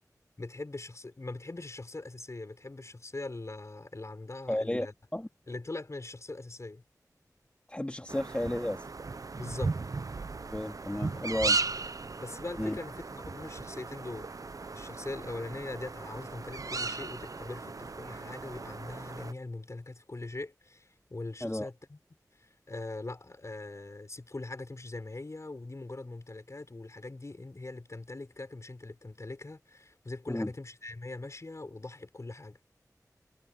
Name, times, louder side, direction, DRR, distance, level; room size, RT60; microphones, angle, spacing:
voice 1, 0.4-4.9 5.5-6.8 9.4-9.8 10.9-11.5 12.2-14.3 14.7-22.0 22.4-32.6, left 2 dB, 50° left, 5.0 m, -42 dB
voice 2, 4.5-4.9 5.1-5.3 7.7-8.8 10.5-11.6 12.6-12.8 21.4-21.7 30.3-30.5, left 1 dB, 20° left, 2.3 m, -32 dB
sound 1, 8.1-19.3, right 3 dB, 60° right, 0.6 m, -36 dB
wide cardioid pair, 65°, 7 cm